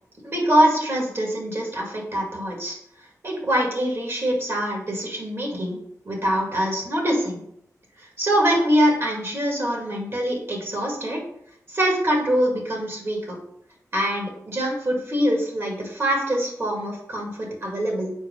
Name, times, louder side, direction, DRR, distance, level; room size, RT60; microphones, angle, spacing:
voice 1, 0.2-2.8 3.2-5.8 6.0-7.4 8.2-11.2 11.7-13.4 13.9-18.1, equal, 45° right, -1 dB, 2.2 m, -24 dB
4.6 x 4.4 x 5.5 m, 0.71 s
wide cardioid pair, 115°, 6 cm